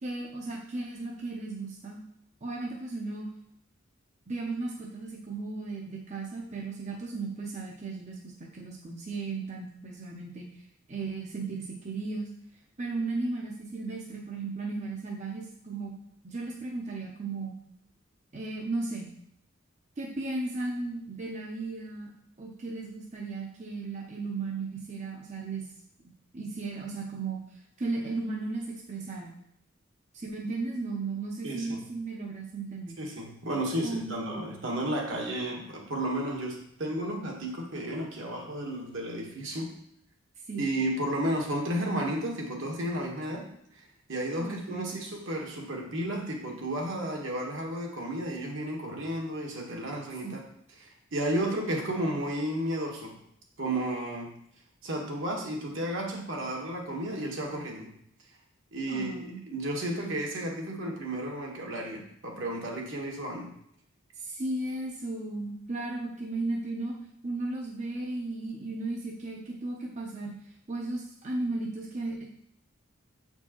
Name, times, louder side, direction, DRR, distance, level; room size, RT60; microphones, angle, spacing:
voice 1, 0.0-2.0 2.4-3.2 4.3-10.5 10.9-12.3 12.8-15.9 16.2-17.5 18.3-19.1 20.0-22.1 22.4-25.7 26.3-29.4 30.1-33.0 33.8-34.4 40.5-40.7 44.4-45.0 50.2-50.3 58.9-59.4 64.2-67.0 67.2-70.3 70.7-72.2, right 3 dB, 35° right, -2 dB, 0.6 m, -35 dB
voice 2, 31.4-31.8 33.0-39.7 40.5-43.5 44.1-50.4 50.8-53.1 53.6-54.3 54.8-57.9 58.7-63.5, right 1 dB, 70° right, -1 dB, 1.3 m, -33 dB
7.1 x 4.5 x 2.9 m, 0.72 s
head